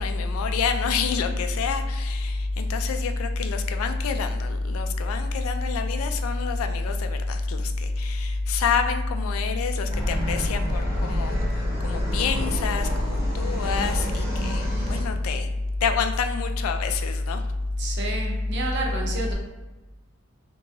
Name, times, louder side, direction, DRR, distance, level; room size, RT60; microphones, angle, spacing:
voice 1, 0.0-15.5 15.8-17.4, left 7 dB, 85° left, 6 dB, 0.3 m, -30 dB
Polla d'aigua - Deltasona, 9.9-15.0, equal, 15° right, 0.7 m, -29 dB
voice 2, 17.8-19.3, equal, 55° right, 1 dB, 0.6 m, -26 dB
2.9 x 2.2 x 2.7 m, 1.1 s
head